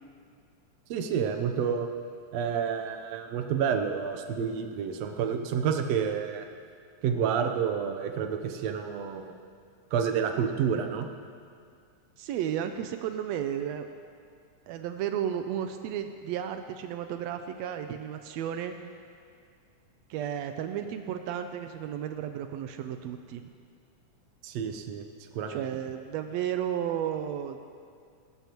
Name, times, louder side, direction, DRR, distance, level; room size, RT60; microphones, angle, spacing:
voice 1, 0.9-1.9 2.3-6.5 7.0-9.3 9.9-11.1 24.4-25.1 25.3-25.7, right 7 dB, 70° right, 5 dB, 1.7 m, -29 dB
voice 2, 12.2-13.9 14.7-18.7 20.1-23.5 25.5-27.6, right 9 dB, 90° right, 7 dB, 1.5 m, -33 dB
19.5 x 13.0 x 3.0 m, 2.2 s
omnidirectional pair, 3.6 m